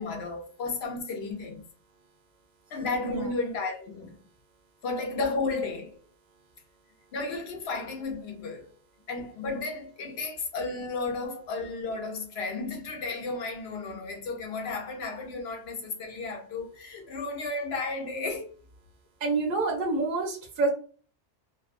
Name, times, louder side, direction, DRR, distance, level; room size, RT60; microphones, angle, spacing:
voice 1, 0.0-1.6 2.7-4.2 4.8-6.0 7.1-8.7 9.1-18.5, left 3 dB, 65° left, 0.8 m, -33 dB
voice 2, 19.2-20.7, right 3 dB, 55° right, 0.6 m, -27 dB
2.5 x 2.1 x 2.4 m
omnidirectional pair, 1.2 m